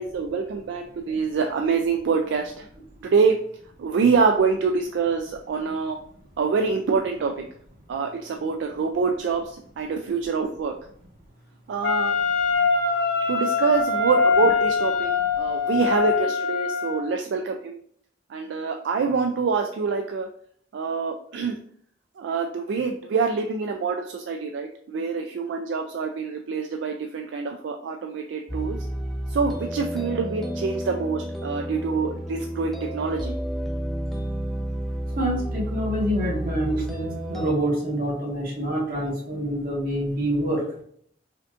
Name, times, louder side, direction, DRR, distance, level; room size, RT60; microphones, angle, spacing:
voice 1, 0.0-2.7 3.0-3.3 3.8-6.0 6.4-7.4 7.9-10.7 11.7-12.2 13.3-15.1 15.4-17.8 18.3-20.3 20.7-21.6 22.2-28.8 29.3-33.3, right 5 dB, 75° right, 3 dB, 0.3 m, -25 dB
Wind instrument woodwind instrument, 11.8-17.1, left 5 dB, 65° left, 0.8 m, -23 dB
sound 1, 28.5-37.5, right 1 dB, ahead, 0.5 m, -31 dB
voice 2, 35.1-40.6, right 1 dB, 50° right, -4 dB, 1.4 m, -26 dB
5.0 x 2.5 x 2.4 m, 0.63 s
head